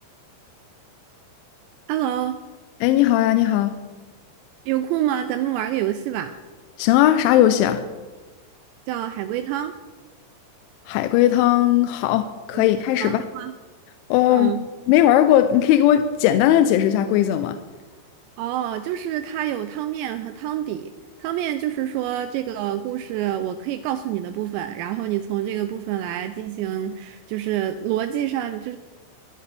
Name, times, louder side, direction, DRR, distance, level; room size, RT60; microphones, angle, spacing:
voice 1, 1.9-2.4 4.7-6.3 8.9-9.7 12.5-12.7 13.0-13.5 14.3-14.6 18.4-20.9 21.2-28.8, right 11 dB, 85° right, 9 dB, 2.6 m, -27 dB
voice 2, 2.8-3.8 6.8-7.9 10.9-13.2 14.1-14.5 14.9-17.6, left 12 dB, 85° left, 9 dB, 2.9 m, -18 dB
22.5 x 11.0 x 3.4 m, 1.3 s
omnidirectional pair, 5.6 m